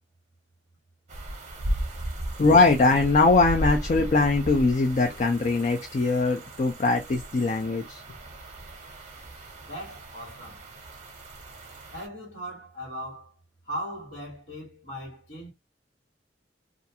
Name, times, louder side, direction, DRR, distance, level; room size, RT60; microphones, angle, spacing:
sound 1, 1.1-12.1, right 1 dB, 40° right, 0.7 m, -36 dB
voice 1, 2.4-8.0, left 3 dB, 45° left, 0.4 m, -21 dB
voice 2, 9.6-10.6 11.9-13.3 13.6-15.5, equal, 90° left, 1.4 m, -38 dB
2.5 x 2.3 x 2.7 m
head